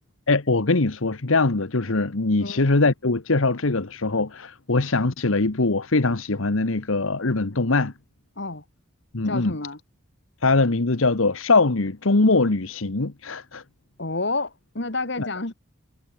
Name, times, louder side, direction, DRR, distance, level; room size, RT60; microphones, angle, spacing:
voice 1, 0.3-7.9 9.1-9.5 10.4-13.6 15.2-15.3, left 3 dB, 80° left, 1.3 m, -22 dB
voice 2, 9.3-9.8 14.0-15.5, left 3 dB, 55° left, 2.4 m, -29 dB
head